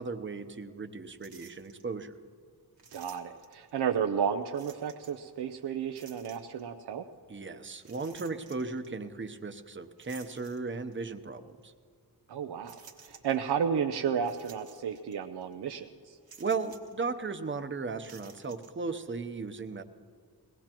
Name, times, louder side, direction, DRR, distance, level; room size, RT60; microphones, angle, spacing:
voice 1, 0.0-2.2 7.3-11.7 16.4-19.8, right 4 dB, 30° right, 8 dB, 0.8 m, -36 dB
sound 1, 1.2-1.8 2.8-3.7 4.5-5.3 5.9-6.7 7.8-8.9 10.0-11.0 11.6-11.7 12.6-13.5 14.2-15.2 15.4-15.5 16.3-17.0 17.9-18.7, right 6 dB, 65° right, 1.4 m, -54 dB
voice 2, 2.9-7.0 12.3-16.2, right 7 dB, 85° right, 6 dB, 0.6 m, -32 dB
22.0 x 18.0 x 3.0 m, 2.1 s
wide cardioid pair, 95°, 39 cm